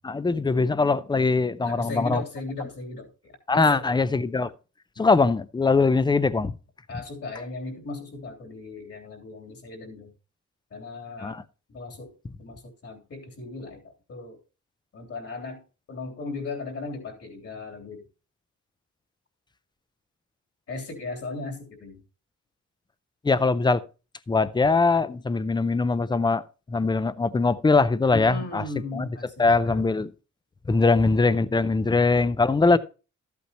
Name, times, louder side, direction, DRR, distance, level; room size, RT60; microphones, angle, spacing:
voice 1, 0.0-2.2 3.5-4.5 5.0-6.5 11.2-11.4 23.2-23.8 24.3-26.4 26.7-28.6 28.9-29.1 29.4-30.1 30.7-32.8, left 3 dB, 15° left, 0.4 m, -22 dB
voice 2, 1.6-4.1 4.9-5.1 6.9-10.1 10.7-11.4 11.7-13.8 14.1-14.4 14.9-15.6 15.9-18.0 20.7-22.0 28.1-29.9 32.6-32.8, left 3 dB, 55° left, 3.2 m, -37 dB
13.5 x 8.4 x 2.9 m
wide cardioid pair, 175°, 30 cm